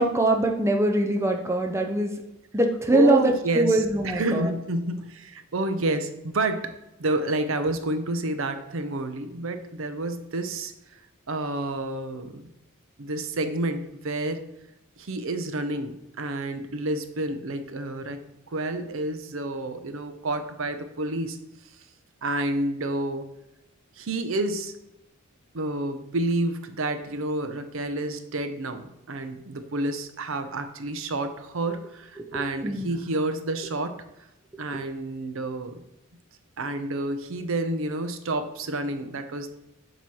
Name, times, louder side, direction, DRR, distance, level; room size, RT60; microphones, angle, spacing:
voice 1, 0.0-2.1 2.5-4.5 32.2-33.0, right 1 dB, 15° right, 3 dB, 0.5 m, -23 dB
voice 2, 2.9-6.7 7.0-10.7 11.3-12.5 13.0-14.4 15.0-18.2 18.5-21.4 22.2-23.3 24.0-24.7 25.5-34.0 34.6-35.7 36.6-39.5, right 2 dB, 65° right, 8 dB, 0.6 m, -29 dB
7.4 x 3.0 x 5.4 m, 0.89 s
head